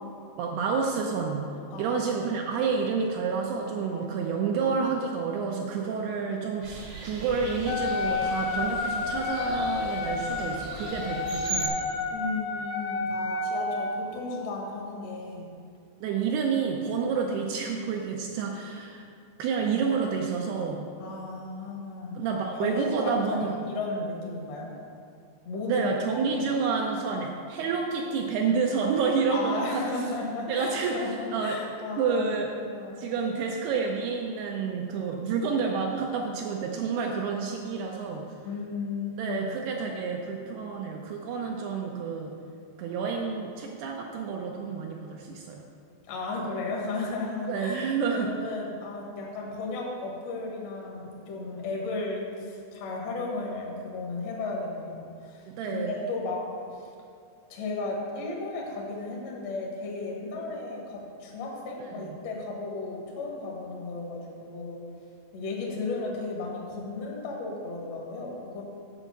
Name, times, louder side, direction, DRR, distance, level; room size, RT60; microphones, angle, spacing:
voice 1, 0.4-1.5 1.8-11.8 16.0-19.0 19.4-20.9 22.2-23.5 25.7-29.8 30.5-31.6 32.0-32.5 33.0-38.3 39.2-42.4 42.8-45.6 47.4-48.3 55.6-55.9 61.9-62.2, right 5 dB, 80° right, 1 dB, 2.4 m, -29 dB
voice 2, 1.7-2.4 3.9-4.1 12.1-15.5 21.0-22.1 22.6-24.7 25.4-25.9 26.3-26.4 29.3-32.3 32.6-33.0 38.4-39.5 46.1-56.4 56.7-56.9 57.5-64.8 65.3-68.6, left 3 dB, 65° left, -2 dB, 1.7 m, -34 dB
sound 1, 6.6-11.7, right 2 dB, 65° right, 1.5 m, -38 dB
Wind instrument woodwind instrument, 7.7-14.1, left 3 dB, 85° left, 3.2 m, -30 dB
8.0 x 5.4 x 7.3 m, 2.4 s
omnidirectional pair, 5.2 m